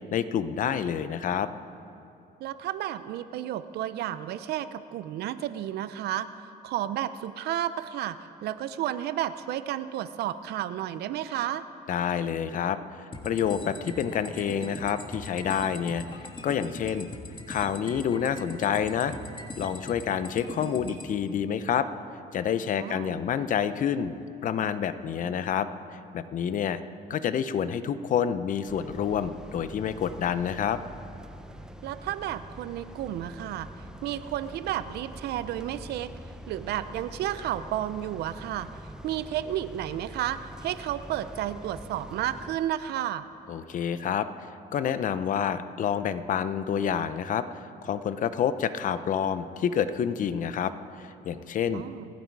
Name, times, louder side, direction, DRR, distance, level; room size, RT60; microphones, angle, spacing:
voice 1, 0.1-1.5 11.9-17.1 17.5-19.1 19.6-21.9 22.3-24.1 24.4-26.8 27.1-30.8 43.5-44.3 44.7-51.8, left 8 dB, 50° left, 12 dB, 0.8 m, -28 dB
voice 2, 2.4-6.3 6.6-11.6 22.8-23.2 31.8-33.7 34.0-36.1 36.5-38.7 39.0-43.3 51.7-52.1, right 12 dB, 75° right, 13 dB, 0.7 m, -32 dB
sound 1, 13.1-21.1, left 2 dB, 30° left, 1.7 m, -41 dB
sound 2, 28.7-42.6, equal, 5° right, 0.7 m, -45 dB
27.5 x 9.5 x 4.8 m, 2.7 s
cardioid pair, 110°, 17 cm